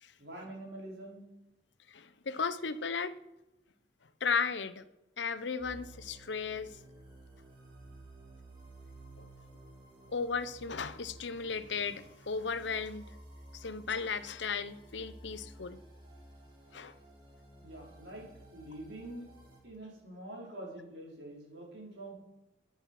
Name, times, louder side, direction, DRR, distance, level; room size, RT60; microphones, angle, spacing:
voice 1, 0.2-1.3 17.6-19.3 19.6-22.1, right 1 dB, 80° right, -2 dB, 4.9 m, -46 dB
voice 2, 1.9-3.2 4.2-4.8 5.2-6.8 9.2-9.3 10.1-13.1 13.5-15.8 16.7-16.9, left 5 dB, 85° left, 14 dB, 0.8 m, -35 dB
sound 1, 5.6-19.6, right 1 dB, 25° right, 3.1 m, -54 dB
13.0 x 9.6 x 5.9 m, 0.92 s
head